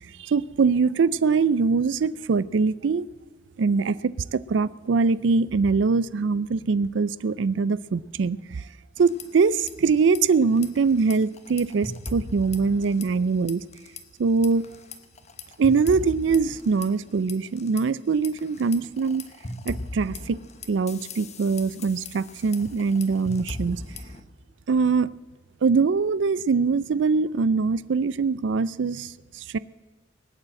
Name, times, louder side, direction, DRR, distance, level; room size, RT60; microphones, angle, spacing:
voice 1, 0.2-3.1 3.6-8.6 9.0-13.6 14.2-14.6 15.6-19.3 19.7-20.4 20.7-23.8 24.7-25.1 25.6-29.6, right 4 dB, 80° right, 0.4 m, -23 dB
sound 1, 9.0-9.7 10.0-10.2 10.6-13.2 13.5-14.0 14.4-17.8 18.2-24.2, left 2 dB, 40° left, 1.1 m, -38 dB
19.5 x 8.9 x 7.6 m
head